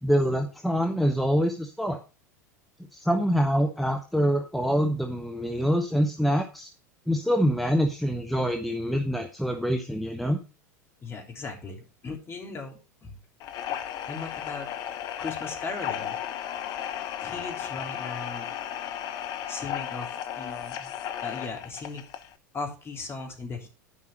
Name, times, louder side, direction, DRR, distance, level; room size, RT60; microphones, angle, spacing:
voice 1, 0.0-2.0 2.9-6.7 7.1-10.4, equal, ahead, 5 dB, 1.1 m, -25 dB
voice 2, 11.0-13.2 14.1-14.7 15.2-16.2 17.2-18.5 19.5-20.9 21.2-22.0 22.5-23.7, left 4 dB, 25° left, 3 dB, 3.5 m, -37 dB
sound 1, 13.4-22.3, left 10 dB, 45° left, 1.0 m, -35 dB
11.0 x 5.5 x 5.4 m, 0.32 s
hypercardioid pair, 90°, 9 cm